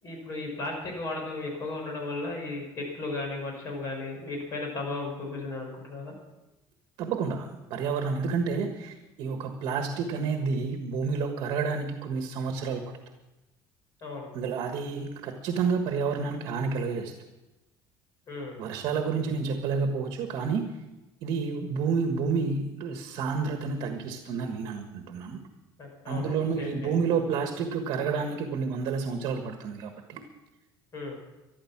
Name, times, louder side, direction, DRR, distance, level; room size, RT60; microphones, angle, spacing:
voice 1, 0.0-6.1 14.0-14.3 18.3-18.6 25.8-26.9 30.9-31.2, left 2 dB, 40° left, 1 dB, 5.6 m, -35 dB
voice 2, 7.0-12.8 14.3-17.1 18.6-20.7 21.2-25.4 26.0-30.2, right 5 dB, 60° right, 5 dB, 1.5 m, -30 dB
14.0 x 11.5 x 7.3 m, 1.0 s
cardioid pair, 155°, 9 cm